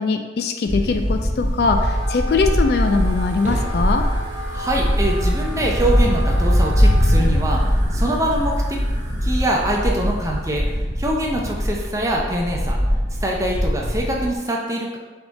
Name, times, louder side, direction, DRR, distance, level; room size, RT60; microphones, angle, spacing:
voice 1, 0.0-4.0, left 4 dB, 60° left, 6 dB, 0.3 m, -21 dB
sound 1, 0.7-14.3, equal, 40° left, 0.9 m, -21 dB
Wind instrument woodwind instrument, 1.6-7.3, equal, 90° right, 0.6 m, -34 dB
Fire, 2.0-10.8, right 1 dB, 40° right, 0.8 m, -34 dB
voice 2, 4.5-8.8 9.2-12.8 13.2-15.0, right 1 dB, 15° right, -1 dB, 0.4 m, -24 dB
3.6 x 3.5 x 3.9 m, 1.3 s
head